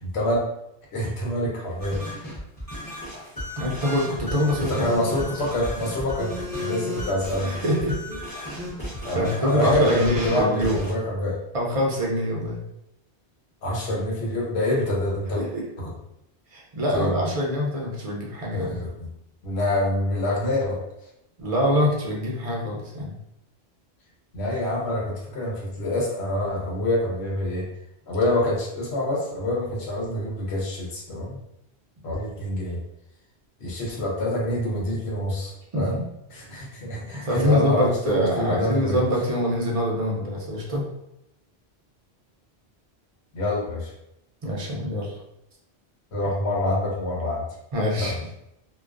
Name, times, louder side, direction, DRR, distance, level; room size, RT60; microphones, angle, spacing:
voice 1, 0.0-0.4 0.9-2.2 4.8-6.3 6.6-7.5 9.0-11.4 13.6-15.4 15.8-15.9 16.9-17.1 18.5-19.1 19.4-20.8 24.3-27.7 28.1-31.4 32.0-32.8 33.6-36.0 36.3-39.0 43.3-43.9 46.1-47.4 48.0-48.1, left 1 dB, 75° left, -3 dB, 1.0 m, -26 dB
sound 1, 1.8-10.9, left 1 dB, 20° left, 0.7 m, -34 dB
voice 2, 3.6-5.3 7.4-8.6 9.1-10.8 11.5-12.6 15.4-15.6 16.5-18.8 21.4-23.1 35.7-36.0 37.1-40.8 44.4-45.2 47.7-48.1, equal, 45° right, -3 dB, 0.4 m, -25 dB
2.3 x 2.2 x 2.3 m, 0.83 s
omnidirectional pair, 1.1 m